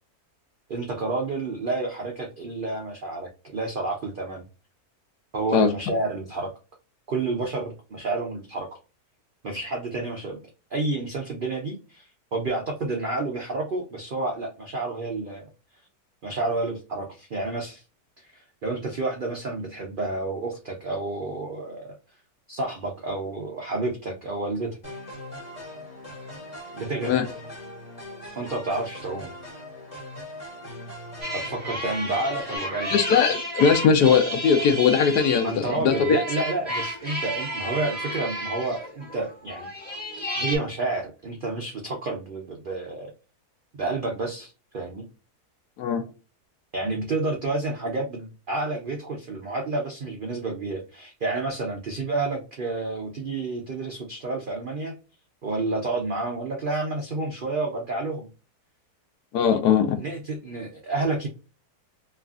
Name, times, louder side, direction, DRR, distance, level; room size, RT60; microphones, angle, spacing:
voice 1, 0.7-4.4 5.3-6.5 7.1-8.7 9.4-15.5 16.2-17.8 18.2-22.0 22.5-24.8 26.7-27.2 28.4-29.3 31.3-33.0 35.4-39.7 40.4-43.1 43.7-45.1 46.7-54.9 55.4-58.3 59.5-59.6 60.0-61.3, right 3 dB, 80° right, 0.4 m, -30 dB
sound 1, 24.8-32.6, left 1 dB, 25° left, 1.2 m, -40 dB
sound 2, 31.2-40.6, equal, 5° left, 1.1 m, -32 dB
voice 2, 32.9-36.2 45.8-46.0 59.3-60.0, left 6 dB, 90° left, 1.2 m, -20 dB
3.1 x 2.4 x 2.3 m
omnidirectional pair, 1.7 m